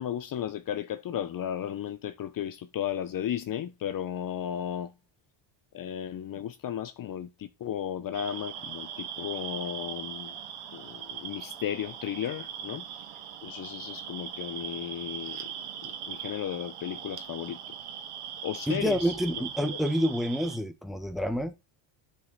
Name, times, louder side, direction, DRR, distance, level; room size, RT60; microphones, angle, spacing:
voice 1, 0.0-4.9 5.7-10.4 10.7-12.8 13.4-15.5 15.8-17.6 18.4-19.5, left 10 dB, 45° left, 0.8 m, -35 dB
sound 1, 8.1-20.6, right 9 dB, 90° right, 2.4 m, -40 dB
voice 2, 18.7-21.5, equal, ahead, 1.4 m, -28 dB
10.5 x 5.4 x 4.1 m
cardioid pair, 125°, 49 cm